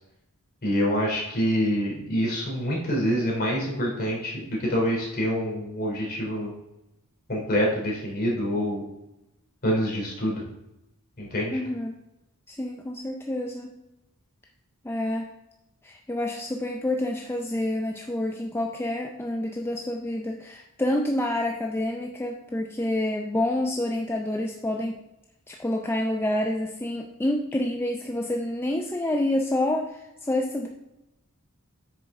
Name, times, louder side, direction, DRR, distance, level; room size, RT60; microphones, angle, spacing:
voice 1, 0.6-6.5 7.3-8.8 9.6-10.4 11.2-11.6, equal, 45° left, -3 dB, 3.0 m, -26 dB
voice 2, 11.5-11.9 12.5-13.7 14.8-15.3 15.8-25.0 25.5-30.7, left 1 dB, 10° left, 2 dB, 0.4 m, -28 dB
8.4 x 6.6 x 3.5 m, 0.92 s
head